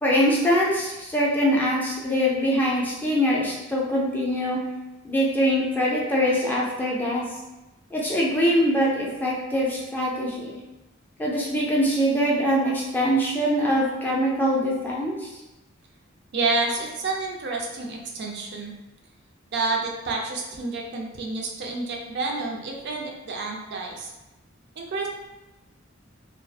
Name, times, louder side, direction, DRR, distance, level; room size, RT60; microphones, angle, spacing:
voice 1, 0.0-4.6 5.0-7.2 7.9-10.6 11.2-15.3, equal, 10° left, -5 dB, 0.4 m, -23 dB
voice 2, 16.3-18.7 19.5-24.1 24.8-25.1, right 3 dB, 55° right, 0 dB, 0.4 m, -29 dB
2.3 x 2.0 x 2.6 m, 1.0 s
head